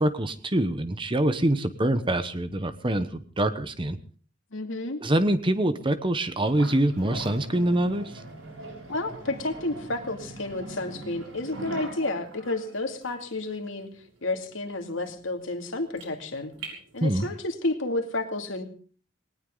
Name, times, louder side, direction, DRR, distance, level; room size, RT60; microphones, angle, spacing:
voice 1, 0.0-4.0 5.0-8.1 17.0-17.3, right 1 dB, 25° right, 11 dB, 0.9 m, -25 dB
voice 2, 4.5-5.0 8.9-13.9 14.2-16.5 16.9-18.6, left 2 dB, 85° left, 4 dB, 2.6 m, -31 dB
sound 1, 6.4-17.4, right 2 dB, 90° right, 6.6 m, -42 dB
20.0 x 18.5 x 3.9 m, 0.42 s
head